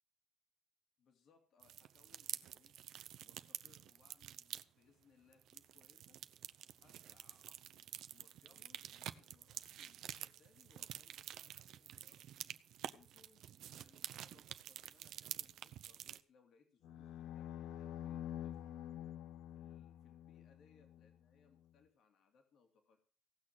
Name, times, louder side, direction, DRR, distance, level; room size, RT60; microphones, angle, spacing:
voice 1, 1.0-2.8 3.2-6.2 6.8-12.3 12.8-18.6 19.5-23.0, left 5 dB, 70° left, 5 dB, 2.9 m, -71 dB
sound 1, 1.6-4.6 5.3-16.2, right 11 dB, 80° right, 0.7 m, -49 dB
sound 2, 16.8-21.1, left 11 dB, 85° left, 0.6 m, -47 dB
17.0 x 6.4 x 7.6 m, 0.41 s
cardioid pair, 90°, 0 cm